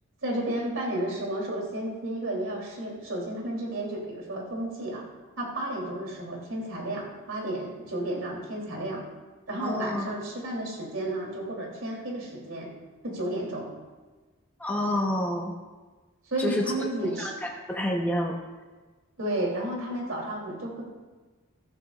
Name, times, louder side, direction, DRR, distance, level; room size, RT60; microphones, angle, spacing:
voice 1, 0.2-5.1 5.4-9.0 9.5-12.7 13.0-13.7 16.3-17.3 19.2-20.9, right 1 dB, 70° right, -2 dB, 3.2 m, -32 dB
voice 2, 9.6-10.1 14.6-15.5 16.4-16.6 17.2-18.4, left 1 dB, 5° left, -1 dB, 0.9 m, -28 dB
14.5 x 13.0 x 2.5 m, 1.3 s
head